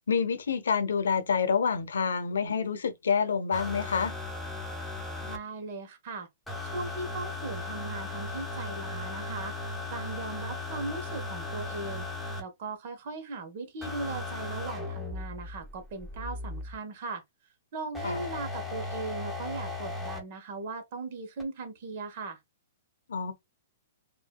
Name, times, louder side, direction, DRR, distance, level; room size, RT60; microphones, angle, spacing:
voice 1, 0.1-4.1 18.0-18.2 23.1-23.3, left 6 dB, 85° left, 0.7 m, -27 dB
sound 1, 3.5-5.4 6.5-12.4 13.8-16.8 17.9-20.2 21.4-21.5, left 2 dB, ahead, 0.8 m, -37 dB
voice 2, 5.2-6.3 6.6-9.5 9.9-12.1 12.4-17.2 17.7-22.4, right 3 dB, 50° right, 1.2 m, -38 dB
4.8 x 2.6 x 2.3 m
hypercardioid pair, 140°, 0 cm